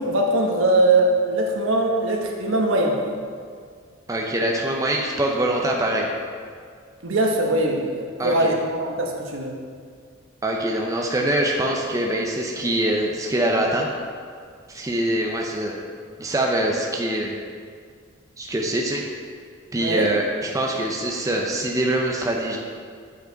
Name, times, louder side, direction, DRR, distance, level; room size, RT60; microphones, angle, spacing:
voice 1, 0.0-3.0 7.0-9.6 19.8-20.1, right 2 dB, 75° right, 0 dB, 1.0 m, -21 dB
voice 2, 4.1-6.1 8.2-8.5 10.4-13.9 14.7-15.8 16.2-17.4 18.4-19.0 19.7-22.6, right 1 dB, 15° right, 0 dB, 0.5 m, -24 dB
9.0 x 4.9 x 3.9 m, 2.1 s
head